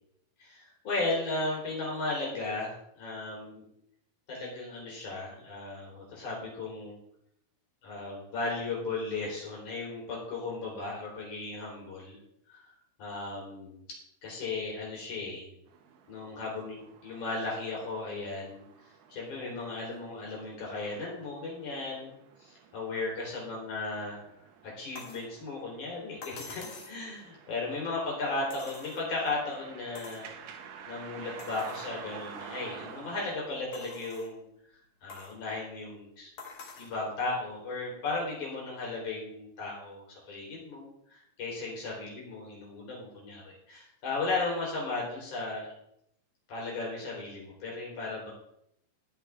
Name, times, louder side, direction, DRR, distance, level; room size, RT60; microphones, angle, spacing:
voice 1, 0.4-3.6 4.3-7.0 7.8-12.2 12.5-12.7 13.0-13.8 14.2-15.5 16.1-18.6 19.1-24.2 24.8-30.3 30.9-34.4 35.0-36.3 36.8-45.7 46.5-48.3, left 3 dB, 40° left, -3 dB, 4.8 m, -36 dB
sound 1, 15.7-33.4, right 7 dB, 70° right, 3.1 m, -50 dB
sound 2, 24.9-25.3 26.2-27.0 28.5-29.3 29.9-30.3 30.8-30.9 31.4-31.9 32.5-32.6 33.7-34.3 35.1-35.4 36.4-37.0 38.2-38.3, left 4 dB, 65° left, 1.6 m, -46 dB
15.5 x 7.1 x 3.6 m, 0.75 s
omnidirectional pair, 5.8 m